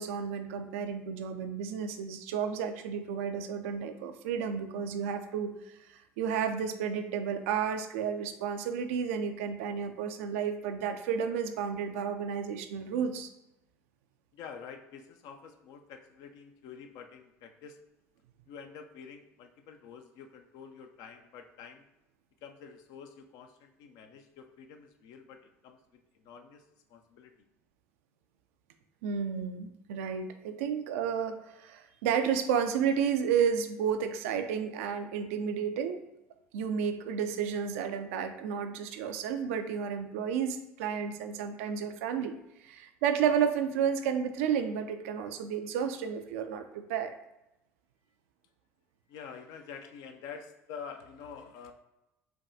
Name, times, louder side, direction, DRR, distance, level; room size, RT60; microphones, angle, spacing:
voice 1, 0.0-5.7 6.2-13.3 29.0-36.0 36.5-42.3 42.6-47.1, right 7 dB, 65° right, 8 dB, 0.4 m, -32 dB
voice 2, 14.3-17.8 18.5-21.9 22.4-27.3 49.1-51.7, left 6 dB, 55° left, 6 dB, 0.5 m, -48 dB
5.9 x 2.3 x 2.6 m, 0.90 s
figure-of-eight pair, 60°, 8 cm